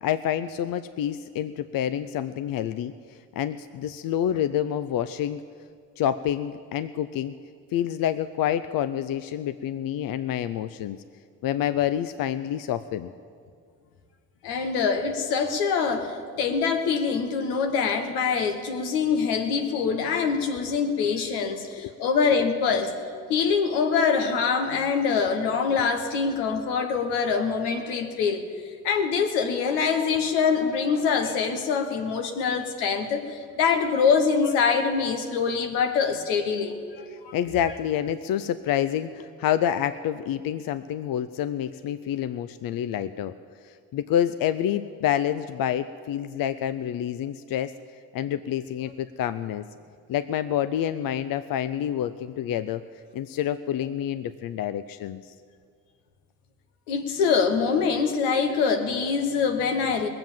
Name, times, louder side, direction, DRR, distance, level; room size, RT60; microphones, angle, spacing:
voice 1, 0.0-5.4 6.0-7.3 7.7-11.0 11.4-13.1 21.8-21.9 37.3-43.3 43.6-47.7 48.1-49.6 50.1-52.8 53.1-55.3, left 10 dB, 60° left, 12 dB, 0.6 m, -28 dB
voice 2, 14.4-23.0 23.3-28.5 28.8-37.3 56.9-60.1, left 5 dB, 85° left, 6 dB, 1.3 m, -24 dB
20.0 x 7.8 x 7.3 m, 2.1 s
hypercardioid pair, 55°, 39 cm